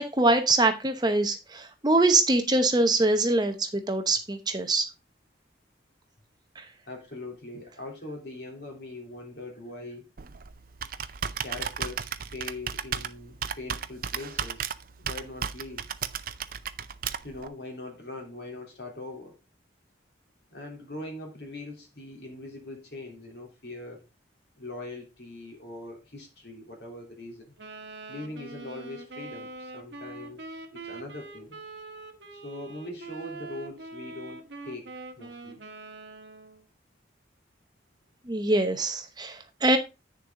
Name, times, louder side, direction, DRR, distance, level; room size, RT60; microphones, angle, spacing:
voice 1, 0.0-4.9 6.6-6.7 38.3-39.8, right 2 dB, 20° right, 0.8 m, -24 dB
voice 2, 6.9-10.1 11.4-14.7 15.0-15.9 17.2-19.4 20.5-24.0 24.6-27.5 28.1-30.4 30.7-31.6 32.3-34.9 35.2-35.6, left 2 dB, 60° left, 3.2 m, -41 dB
Computer keyboard, 10.2-17.5, right 7 dB, 50° right, 0.5 m, -35 dB
Wind instrument woodwind instrument, 27.6-36.6, right 3 dB, 75° right, 1.4 m, -43 dB
8.8 x 6.7 x 3.8 m
head